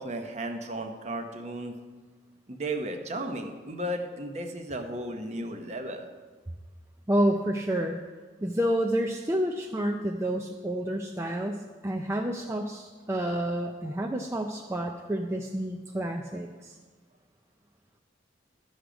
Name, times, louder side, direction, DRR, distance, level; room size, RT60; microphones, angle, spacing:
voice 1, 0.0-1.8 2.5-6.1, right 1 dB, 40° right, 5 dB, 0.9 m, -34 dB
voice 2, 7.1-8.0 8.4-16.8, right 1 dB, 15° right, 2 dB, 0.4 m, -29 dB
11.5 x 6.4 x 5.0 m, 1.4 s
head